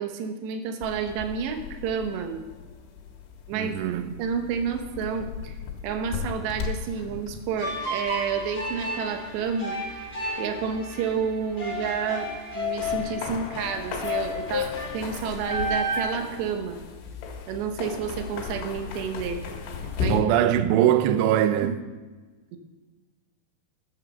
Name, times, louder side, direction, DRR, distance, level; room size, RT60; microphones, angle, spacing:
voice 1, 0.0-2.4 3.5-3.7 4.2-5.6 5.8-9.7 10.4-16.8 17.5-19.4 20.0-20.3 21.6-21.7, right 6 dB, 75° right, 2.9 m, -30 dB
sound 1, 0.8-20.2, left 6 dB, 75° left, 3.9 m, -37 dB
voice 2, 3.5-4.1 20.1-21.8, right 11 dB, 90° right, 2.4 m, -22 dB
sound 2, 7.6-16.0, left 2 dB, 25° left, 1.3 m, -32 dB
13.5 x 7.3 x 6.6 m
omnidirectional pair, 5.7 m